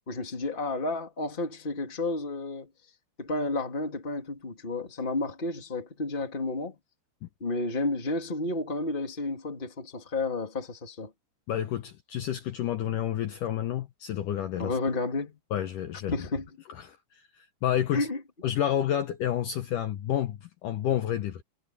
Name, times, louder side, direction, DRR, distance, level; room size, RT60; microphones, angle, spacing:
voice 1, 0.1-2.7 3.2-6.8 7.4-11.1 14.6-15.4 16.1-16.5 17.9-18.2, left 2 dB, 20° left, 1.6 m, -31 dB
voice 2, 11.5-14.7 15.5-16.1 16.8-17.0 17.6-18.1 18.4-21.4, left 11 dB, 85° left, 1.8 m, -29 dB
omnidirectional pair, 5.2 m